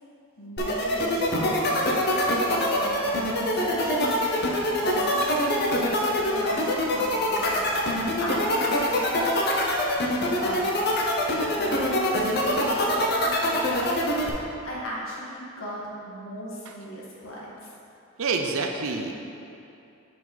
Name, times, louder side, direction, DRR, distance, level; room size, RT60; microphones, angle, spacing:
voice 1, 0.4-2.0 2.5-4.2 4.8-5.7 6.3-7.7 8.2-9.2 10.1-10.9 11.5-14.0 14.6-17.6, equal, 65° left, -6 dB, 1.5 m, -36 dB
sound 1, 0.6-14.3, left 1 dB, 45° left, 0.8 m, -24 dB
voice 2, 18.2-19.1, right 4 dB, 70° right, 3 dB, 0.6 m, -27 dB
8.2 x 4.5 x 4.0 m, 2.7 s
head